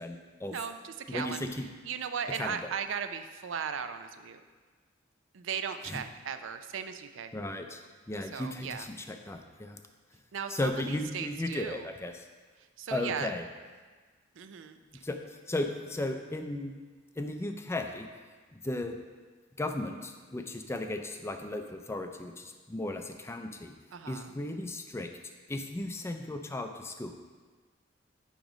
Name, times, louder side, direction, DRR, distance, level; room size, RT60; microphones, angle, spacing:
voice 1, 0.0-0.6 1.1-1.7 2.4-2.6 5.9-6.0 7.3-7.8 8.1-9.8 10.5-12.3 12.9-13.4 15.0-16.7 17.2-18.1 18.5-19.0 19.6-23.7 24.1-25.1 25.5-27.2, left 1 dB, 15° left, 5 dB, 0.4 m, -35 dB
voice 2, 0.5-1.4 1.8-4.4 5.3-7.3 8.3-8.9 10.3-11.9 12.8-13.3 14.4-15.0 23.9-24.3, right 7 dB, 70° right, 9 dB, 0.4 m, -37 dB
9.0 x 3.0 x 5.0 m, 1.4 s
head